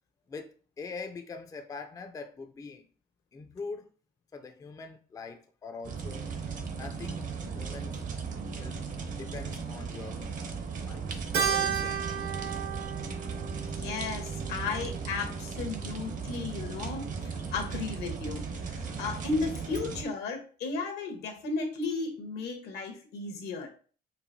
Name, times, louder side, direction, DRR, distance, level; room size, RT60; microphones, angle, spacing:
voice 1, 0.3-2.9 3.3-3.9 4.3-6.3 6.7-7.9 8.6-8.8 9.1-10.2 10.8-12.1, left 4 dB, 20° left, 0.4 m, -43 dB
sound 1, 5.8-20.0, right 5 dB, 50° right, 0.8 m, -37 dB
Keyboard (musical), 11.3-15.9, right 8 dB, 80° right, 1.3 m, -34 dB
voice 2, 13.7-18.4 19.0-23.7, left 4 dB, 80° left, 1.1 m, -34 dB
4.6 x 2.5 x 2.6 m
cardioid pair, 110°, 17 cm